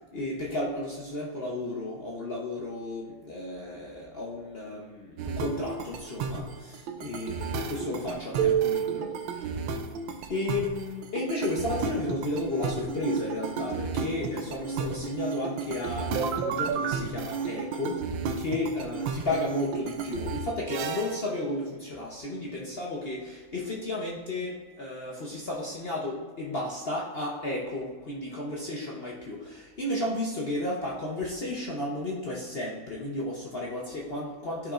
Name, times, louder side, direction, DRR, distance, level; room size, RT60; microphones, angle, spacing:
voice 1, 0.1-9.5 10.3-18.1 18.4-34.7, left 2 dB, 50° left, -3 dB, 0.7 m, -33 dB
sound 1, 5.2-21.3, right 6 dB, 85° right, 1.4 m, -32 dB
13.0 x 5.1 x 2.5 m, 1.4 s
omnidirectional pair, 2.1 m